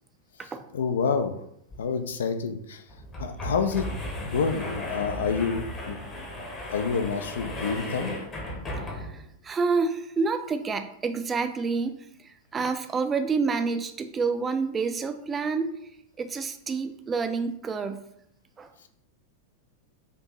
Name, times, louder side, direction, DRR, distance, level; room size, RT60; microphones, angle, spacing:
voice 1, 0.7-1.3 1.8-2.8 3.2-3.9 4.2-6.0 6.7-8.2, left 5 dB, 65° left, 8 dB, 0.4 m, -28 dB
sound 1, 1.7-1.8 2.1-2.2 2.9-9.3, left 1 dB, 25° left, 0.8 m, -35 dB
voice 2, 8.9-15.7 16.2-18.0 18.6-18.7, right 4 dB, 20° right, 8 dB, 0.3 m, -28 dB
4.3 x 2.6 x 3.0 m, 0.76 s
figure-of-eight pair, 90°, 0 cm